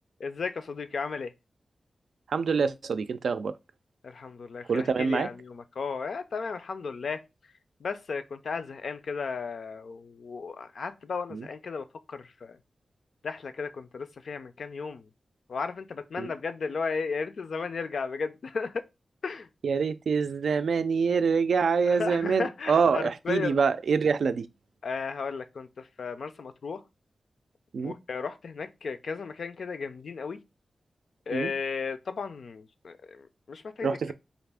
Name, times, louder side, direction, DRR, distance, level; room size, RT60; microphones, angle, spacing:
voice 1, 0.2-1.3 4.0-7.2 7.8-12.6 13.2-15.1 15.5-18.8 19.2-19.5 21.9-23.6 24.8-26.8 27.8-30.4 31.3-34.1, left 5 dB, 65° left, 0.4 m, -35 dB
voice 2, 2.3-3.6 4.7-5.3 11.3-11.5 16.2-16.3 19.6-24.5 27.7-27.9 31.3-31.5 33.8-34.1, right 5 dB, 85° right, 0.3 m, -25 dB
4.0 x 2.5 x 3.4 m
wide cardioid pair, 165°, 0 cm